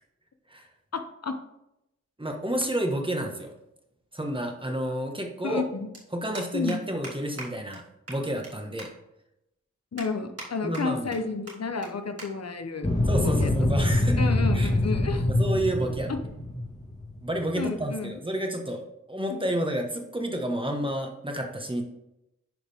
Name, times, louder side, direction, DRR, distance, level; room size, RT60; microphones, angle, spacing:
voice 1, 0.9-1.4 5.4-5.9 6.5-6.8 9.9-12.9 13.2-13.8 14.2-15.3 16.1-16.2 17.5-18.2 19.3-19.5, left 4 dB, 60° left, 7 dB, 0.9 m, -31 dB
voice 2, 2.2-3.5 4.1-5.6 6.1-7.8 8.1-8.9 10.6-11.2 13.1-14.3 14.5-14.7 15.3-16.1 17.2-21.8, right 1 dB, 15° right, 2 dB, 1.4 m, -30 dB
sound 1, 5.9-6.0 6.3-6.8 7.0-7.1 7.4-7.5 7.7-7.8 8.1-8.5 8.8-8.9 9.3-9.4 10.0-10.5 10.7-11.2 11.5-11.6 11.8-11.9 12.2-12.3 12.6-12.8 13.6-13.9, right 2 dB, 55° right, 2.6 m, -40 dB
sound 2, 12.8-17.6, left 1 dB, 25° left, 2.0 m, -25 dB
11.0 x 5.0 x 3.6 m, 0.86 s
wide cardioid pair, 65°, 29 cm